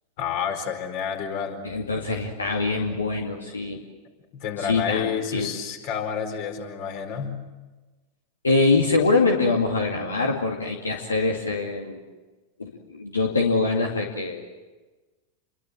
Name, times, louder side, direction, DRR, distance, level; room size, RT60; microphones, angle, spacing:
voice 1, 0.2-1.6 4.3-7.4, left 7 dB, 45° left, 5 dB, 4.5 m, -29 dB
voice 2, 1.6-3.8 4.6-5.5 8.4-12.0 12.6-14.4, left 3 dB, 75° left, 1 dB, 2.5 m, -24 dB
29.5 x 23.0 x 7.7 m, 1.2 s
figure-of-eight pair, 90°, 0 cm